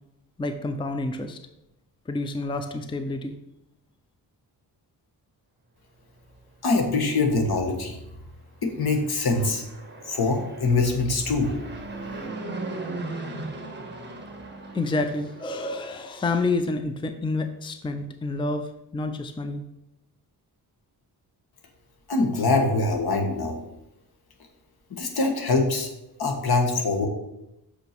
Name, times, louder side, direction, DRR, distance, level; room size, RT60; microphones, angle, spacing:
voice 1, 0.4-1.4 2.1-3.4 14.7-19.6, left 2 dB, 15° left, 8 dB, 0.5 m, -29 dB
voice 2, 6.6-8.0 8.6-9.6 10.0-11.5 22.1-23.6 24.9-25.9 26.2-27.1, left 3 dB, 65° left, 3 dB, 1.6 m, -23 dB
Fixed-wing aircraft airplane, 8.8-16.2, right 2 dB, 25° right, 1.4 m, -38 dB
6.1 x 5.8 x 5.9 m, 0.88 s
wide cardioid pair, 120°, 40 cm